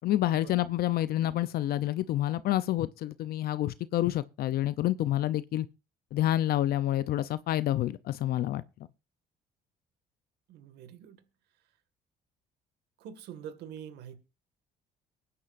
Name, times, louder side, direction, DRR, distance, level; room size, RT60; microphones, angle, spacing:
voice 1, 0.0-5.7 6.1-8.6, left 13 dB, 65° left, 0.6 m, -28 dB
voice 2, 10.5-11.2 13.0-14.2, right 9 dB, 80° right, 2.0 m, -45 dB
23.5 x 9.7 x 2.6 m
cardioid pair, 110°, 17 cm